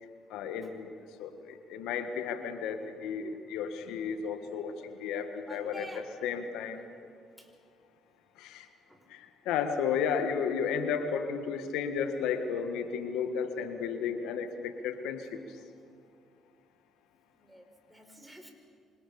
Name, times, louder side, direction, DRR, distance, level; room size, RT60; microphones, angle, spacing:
voice 1, 0.3-0.9 1.2-5.9 6.2-6.8 8.4-8.7 9.1-15.4, left 6 dB, 80° left, 8 dB, 1.8 m, -33 dB
voice 2, 5.4-6.1 7.4-7.5 8.9-9.1 17.3-18.5, right 1 dB, 5° right, 5 dB, 5.2 m, -49 dB
27.5 x 25.0 x 7.1 m, 2.3 s
supercardioid pair, 65°, 0 cm